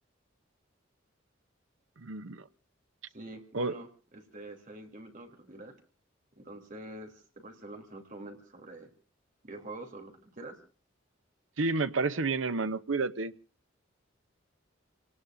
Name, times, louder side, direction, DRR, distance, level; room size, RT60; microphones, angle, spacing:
voice 1, 2.0-2.5 3.5-3.7 11.6-13.3, right 3 dB, 80° right, 12 dB, 0.8 m, -30 dB
voice 2, 3.1-5.8 6.3-8.9 9.4-10.6, right 2 dB, 40° right, 3 dB, 3.4 m, -46 dB
29.5 x 18.5 x 2.6 m, 0.37 s
head